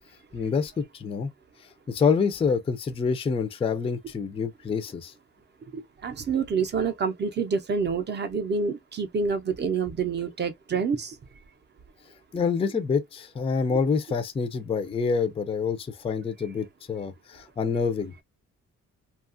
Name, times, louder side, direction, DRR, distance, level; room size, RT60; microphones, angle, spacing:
voice 1, 0.3-1.3 1.9-5.1 12.3-18.1, left 5 dB, 20° left, 0.3 m, -27 dB
voice 2, 5.7-11.2 13.7-13.8, right 5 dB, 35° right, 0.5 m, -27 dB
2.8 x 2.3 x 2.4 m
wide cardioid pair, 165°, 30 cm